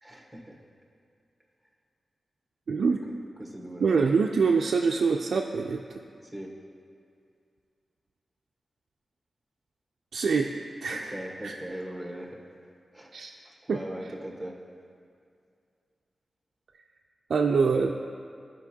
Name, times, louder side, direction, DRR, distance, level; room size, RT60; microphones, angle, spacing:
voice 1, 0.0-0.6 3.4-4.0 6.3-6.5 10.9-12.4 12.9-13.1 13.7-14.6, right 1 dB, ahead, -1 dB, 1.3 m, -39 dB
voice 2, 2.7-3.0 3.8-5.8 10.1-10.5 10.8-11.2 11.4-11.5 13.1-13.3 13.7-13.8 17.3-17.9, right 5 dB, 80° right, 0 dB, 0.4 m, -24 dB
14.0 x 5.2 x 2.8 m, 2.3 s
wide cardioid pair, 95°, 0 cm